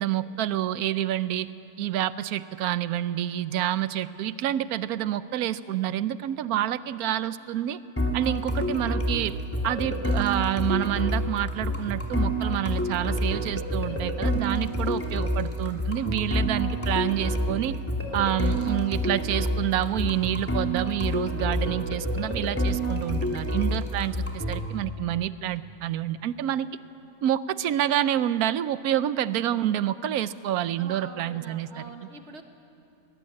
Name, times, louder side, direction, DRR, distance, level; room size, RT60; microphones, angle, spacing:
voice 1, 0.0-1.5 1.8-7.8 8.1-9.4 9.6-17.8 18.1-26.7 27.2-31.9, right 11 dB, 85° right, 15 dB, 1.2 m, -28 dB
sound 1, 8.0-24.6, equal, 10° left, 2.6 m, -28 dB
voice 2, 30.8-32.4, right 4 dB, 50° right, 6 dB, 1.7 m, -44 dB
22.5 x 18.5 x 8.7 m, 2.7 s
omnidirectional pair, 1.5 m